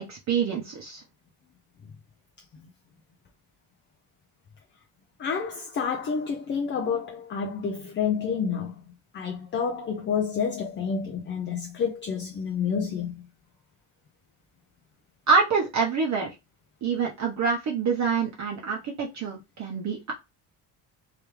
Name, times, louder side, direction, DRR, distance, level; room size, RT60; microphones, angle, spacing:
voice 1, 0.1-1.0 15.3-16.3 16.8-20.1, right 5 dB, 40° right, 0.8 m, -26 dB
voice 2, 5.2-8.8 9.1-13.2, left 6 dB, 30° left, 0.4 m, -29 dB
3.4 x 3.3 x 3.1 m
cardioid pair, 165°, 44 cm